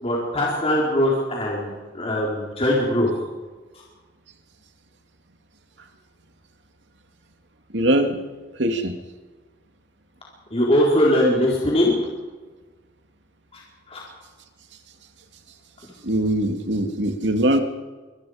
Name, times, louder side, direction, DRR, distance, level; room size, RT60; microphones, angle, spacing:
voice 1, 0.0-3.1 10.5-12.0 13.9-14.0, left 1 dB, 35° left, -4 dB, 4.3 m, -21 dB
voice 2, 7.7-8.2 8.6-9.0 16.0-17.6, right 1 dB, 90° right, 5 dB, 2.4 m, -21 dB
25.0 x 20.5 x 5.1 m, 1.3 s
head